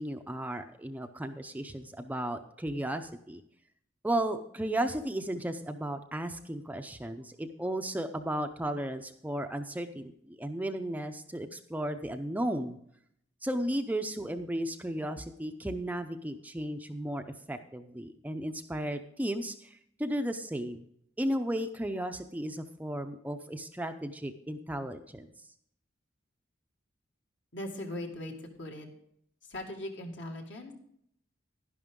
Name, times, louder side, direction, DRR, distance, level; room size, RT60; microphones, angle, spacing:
voice 1, 0.0-3.4 4.0-12.8 13.4-20.9 21.2-25.3, right 1 dB, 10° right, 7 dB, 0.5 m, -34 dB
voice 2, 27.5-28.9 29.4-30.7, left 1 dB, 65° left, 2 dB, 2.0 m, -39 dB
11.0 x 11.0 x 3.7 m, 0.70 s
head